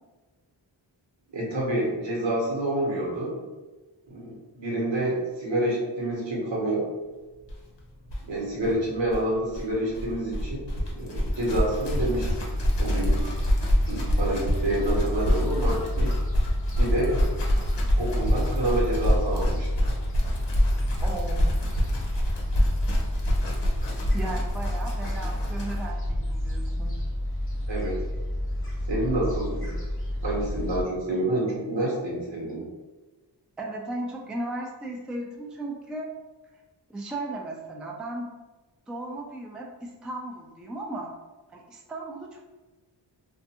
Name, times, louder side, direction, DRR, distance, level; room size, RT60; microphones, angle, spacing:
voice 1, 1.3-3.4 4.1-6.9 8.2-10.6 10.9-12.4 12.8-13.2 13.9-16.1 16.8-17.3 17.9-19.7 27.7-28.0 28.9-29.7 30.2-32.7, right 1 dB, 75° right, -4 dB, 1.0 m, -28 dB
sound 1, 7.5-7.6 7.8-7.9 8.0-25.9, equal, 65° left, 0.7 m, -27 dB
Gull seagull, 11.9-30.8, left 1 dB, 30° left, 0.8 m, -30 dB
voice 2, 21.0-21.5 24.1-26.9 33.6-36.1 36.9-38.3 38.9-41.1 41.5-42.4, right 2 dB, ahead, 0 dB, 0.3 m, -36 dB
2.4 x 2.2 x 2.8 m, 1.2 s
wide cardioid pair, 45°, 45 cm